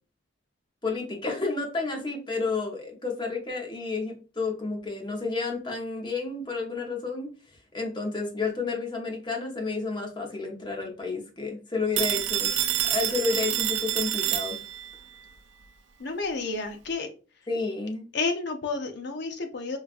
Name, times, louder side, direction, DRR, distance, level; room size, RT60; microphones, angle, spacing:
voice 1, 0.8-7.3 7.7-12.5 12.9-14.6 17.5-18.1, left 4 dB, 25° left, 0 dB, 0.9 m, -31 dB
Telephone, 12.0-15.0, right 12 dB, 70° right, 0.4 m, -27 dB
voice 2, 16.0-17.1 18.1-19.8, left 3 dB, 60° left, 5 dB, 0.7 m, -30 dB
5.0 x 2.4 x 2.5 m, 0.35 s
head